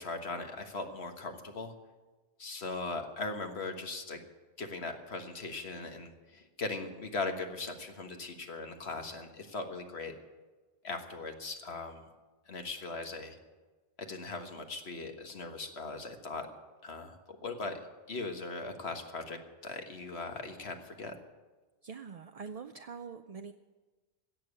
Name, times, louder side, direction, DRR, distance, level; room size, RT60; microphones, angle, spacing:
voice 1, 0.0-1.7 2.4-4.2 4.6-10.1 10.8-12.0 12.5-13.4 14.0-16.5 16.8-17.8 18.1-21.1, left 3 dB, 60° left, 5 dB, 1.6 m, -39 dB
voice 2, 21.8-23.5, right 6 dB, 50° right, 8 dB, 0.4 m, -44 dB
16.5 x 7.1 x 9.5 m, 1.3 s
omnidirectional pair, 1.2 m